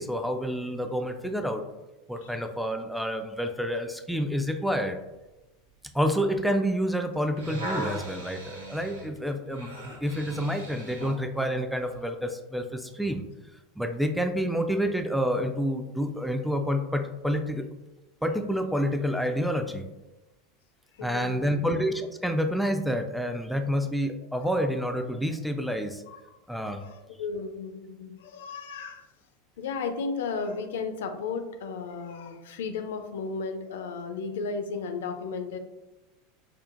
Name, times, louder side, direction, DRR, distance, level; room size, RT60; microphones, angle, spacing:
voice 1, 0.0-1.6 2.1-5.0 5.9-13.2 13.8-17.7 18.2-19.8 21.0-26.0 26.5-26.8, equal, ahead, 6 dB, 0.4 m, -28 dB
sound 1, 7.1-11.2 11.9-12.0, right 1 dB, 85° right, 0.7 m, -38 dB
voice 2, 20.9-21.8 26.1-26.2 26.8-29.1 29.6-35.6, left 4 dB, 65° left, 6 dB, 0.4 m, -34 dB
5.4 x 2.1 x 2.5 m, 1.0 s
figure-of-eight pair, 85°, 0 cm